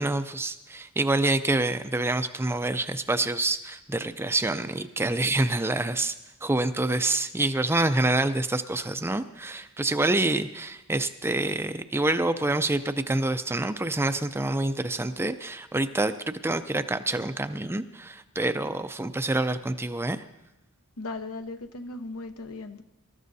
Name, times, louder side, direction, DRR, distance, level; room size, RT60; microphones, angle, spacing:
voice 1, 0.0-6.1 6.4-20.2, right 2 dB, 10° right, 0.5 m, -27 dB
voice 2, 21.0-22.8, left 2 dB, 70° left, 0.9 m, -37 dB
25.5 x 13.5 x 2.7 m
head